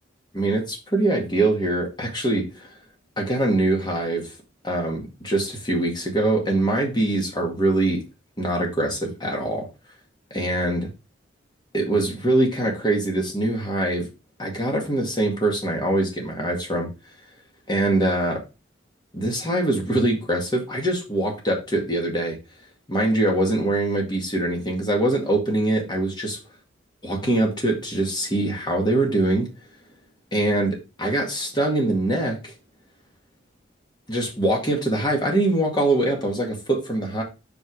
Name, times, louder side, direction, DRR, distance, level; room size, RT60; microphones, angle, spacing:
voice 1, 0.3-2.7 3.2-4.3 4.6-8.0 8.4-9.7 10.3-10.9 11.7-14.1 14.4-16.9 17.7-18.4 19.1-22.4 22.9-26.4 27.0-29.5 30.3-32.5 34.1-37.2, right 1 dB, 25° left, 2.2 m, -23 dB
5.3 x 5.1 x 4.9 m
head